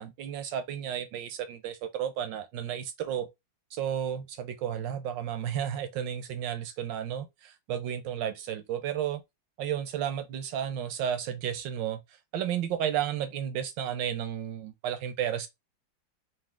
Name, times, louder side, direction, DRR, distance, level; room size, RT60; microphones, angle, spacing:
voice 1, 0.0-3.3 3.7-9.2 9.6-12.0 12.3-15.5, right 9 dB, 75° right, 1.4 m, -32 dB
3.8 x 2.7 x 3.5 m
omnidirectional pair, 2.0 m